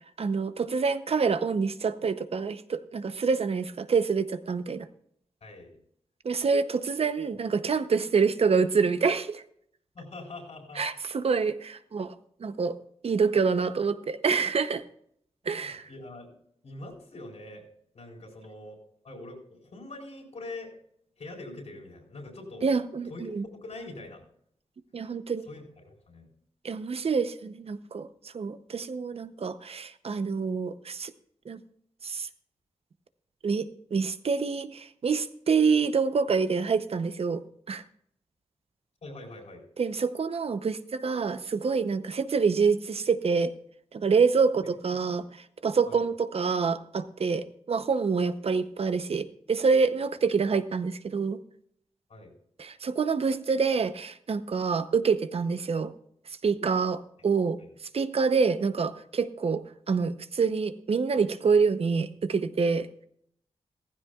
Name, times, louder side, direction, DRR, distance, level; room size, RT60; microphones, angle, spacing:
voice 1, 0.2-4.9 6.2-9.4 10.8-12.1 12.4-12.8 13.0-14.8 15.5-15.9 22.6-23.4 24.9-25.5 26.6-31.1 31.5-31.6 32.0-32.3 33.4-37.8 39.8-43.5 43.9-51.4 52.6-55.9 56.4-57.6 57.9-62.9, right 5 dB, 60° right, 12 dB, 0.7 m, -27 dB
voice 2, 5.4-5.7 9.9-10.8 15.4-16.4 16.6-17.6 17.9-18.8 19.0-20.7 21.2-22.7 23.1-24.3 25.5-26.3 39.0-39.6 45.1-45.2 45.9-46.0 52.1-52.3 57.2-57.3 57.6-57.7, left 2 dB, 75° left, -1 dB, 4.2 m, -43 dB
16.0 x 15.0 x 2.4 m, 0.68 s
wide cardioid pair, 130°, 11 cm